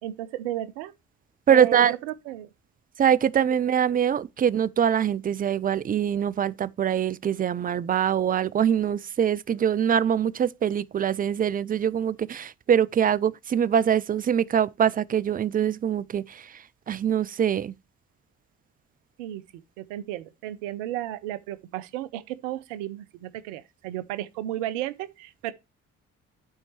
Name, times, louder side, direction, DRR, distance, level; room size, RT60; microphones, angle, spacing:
voice 1, 0.0-0.9 1.5-2.5 19.2-19.4 19.8-25.5, right 13 dB, 85° right, 0.6 m, -34 dB
voice 2, 1.5-1.9 3.0-16.5 16.9-17.7, right 9 dB, 25° right, 0.4 m, -23 dB
11.5 x 4.4 x 3.0 m
hypercardioid pair, 45°, 36 cm